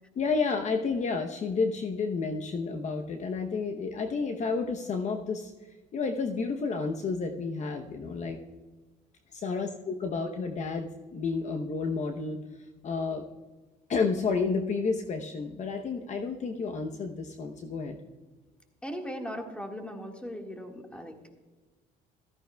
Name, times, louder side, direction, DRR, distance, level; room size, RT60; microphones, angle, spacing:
voice 1, 0.2-5.5 5.9-8.4 9.3-12.4 12.8-13.2 13.9-18.0, left 4 dB, 45° left, 4 dB, 0.9 m, -31 dB
voice 2, 18.8-21.4, equal, 5° left, 3 dB, 1.7 m, -39 dB
14.5 x 13.5 x 2.3 m, 1.3 s
cardioid pair, 110°, 17 cm